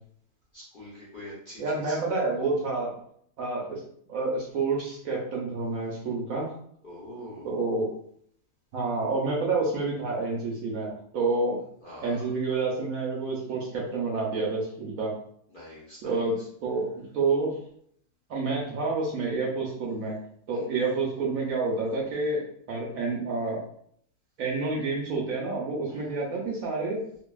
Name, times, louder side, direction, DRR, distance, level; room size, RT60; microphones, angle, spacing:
voice 1, 0.5-2.0 6.8-7.6 11.8-12.3 15.5-16.5 20.5-20.6 25.9-26.2, equal, 60° left, -8 dB, 0.5 m, -45 dB
voice 2, 1.6-3.0 3.4-3.8 4.1-6.5 7.4-7.9 8.7-11.6 12.0-15.1 16.0-17.5 18.3-20.2 20.5-22.4 22.7-23.6 24.4-27.0, right 3 dB, 70° right, -2 dB, 0.8 m, -28 dB
2.7 x 2.5 x 2.3 m, 0.66 s
omnidirectional pair, 2.0 m